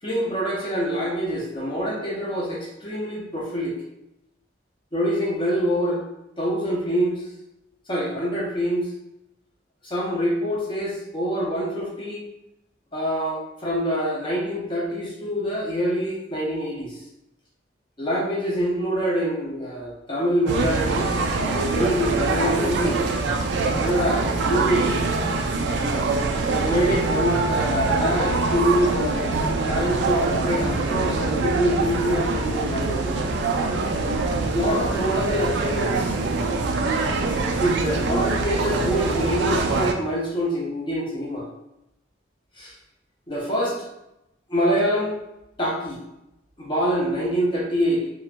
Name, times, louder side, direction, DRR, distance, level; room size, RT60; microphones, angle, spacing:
voice 1, 0.0-3.8 4.9-6.0 6.4-7.3 7.9-8.9 9.8-12.3 12.9-17.0 18.0-21.1 21.4-23.0 23.7-25.1 26.5-33.2 34.5-36.1 37.6-41.5 42.6-42.7 43.3-43.9 44.5-45.2 45.6-46.0 46.6-48.1, equal, 25° left, -5 dB, 0.6 m, -25 dB
sound 1, 20.5-39.9, right 3 dB, 65° right, 0.3 m, -24 dB
2.9 x 2.2 x 2.4 m, 0.86 s
head